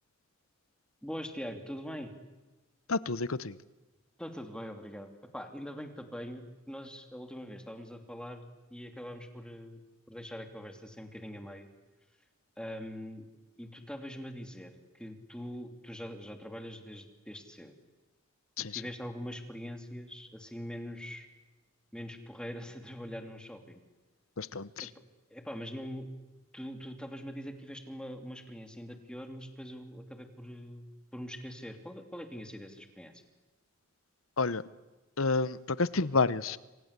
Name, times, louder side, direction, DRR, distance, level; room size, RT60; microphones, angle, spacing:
voice 1, 1.0-2.1 4.2-9.8 10.1-11.7 12.6-13.3 13.6-14.7 15.0-17.7 18.6-21.3 21.9-23.8 24.8-24.9 25.3-26.1 26.5-30.9 31.1-33.1, equal, 5° left, 6 dB, 2.8 m, -43 dB
voice 2, 2.9-3.6 18.6-18.8 24.4-24.9 34.4-34.6 35.2-36.6, left 3 dB, 75° left, 18 dB, 0.9 m, -30 dB
27.0 x 26.0 x 8.3 m, 1.1 s
head